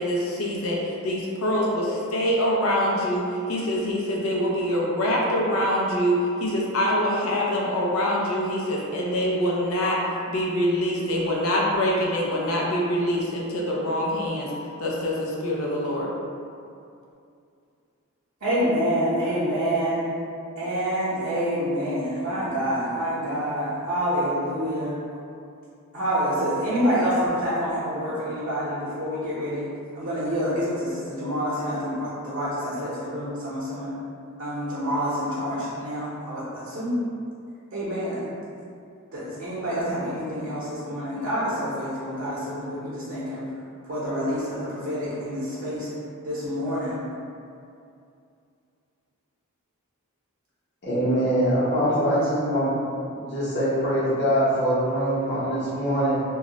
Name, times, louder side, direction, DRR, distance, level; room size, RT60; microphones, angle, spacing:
voice 1, 0.0-10.0 10.3-14.5 14.8-16.1, equal, 75° left, -4 dB, 0.5 m, -25 dB
voice 2, 18.4-20.1 20.6-25.0 25.9-29.7 29.9-33.9 34.4-37.0 37.7-38.2 39.1-43.4 43.9-45.9 46.2-47.0 51.9-52.3, equal, 60° right, -10 dB, 0.7 m, -27 dB
voice 3, 50.8-52.7 53.2-56.2, equal, 50° left, -9 dB, 0.9 m, -23 dB
2.3 x 2.0 x 3.7 m, 2.5 s
head